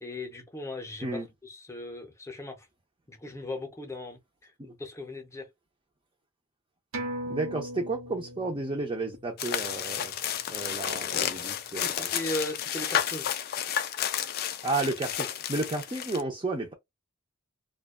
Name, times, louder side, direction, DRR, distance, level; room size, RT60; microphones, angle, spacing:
voice 1, 0.0-1.1 1.4-2.7 3.1-5.5 11.8-13.3, left 1 dB, 15° left, 0.7 m, -38 dB
sound 1, 6.9-11.9 12.2-12.3, right 1 dB, 80° right, 0.9 m, -41 dB
voice 2, 7.3-10.1 10.5-12.1 14.6-16.7, right 2 dB, 25° right, 0.5 m, -32 dB
sound 2, 9.4-16.2, left 10 dB, 45° left, 0.3 m, -31 dB
2.4 x 2.2 x 2.3 m
head